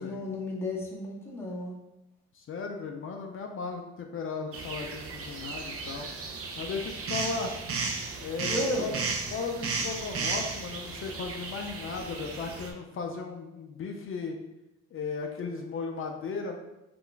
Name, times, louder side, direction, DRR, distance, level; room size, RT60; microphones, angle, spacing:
voice 1, 0.0-1.8 8.5-8.9, left 1 dB, 10° left, -4 dB, 0.8 m, -33 dB
voice 2, 2.3-6.1 6.6-7.5 8.2-8.9 9.3-14.4 14.9-16.6, left 4 dB, 45° left, 3 dB, 0.4 m, -36 dB
sound 1, 4.5-12.7, right 4 dB, 50° right, 0.5 m, -35 dB
2.5 x 2.1 x 3.7 m, 0.94 s
cardioid pair, 90°, 30 cm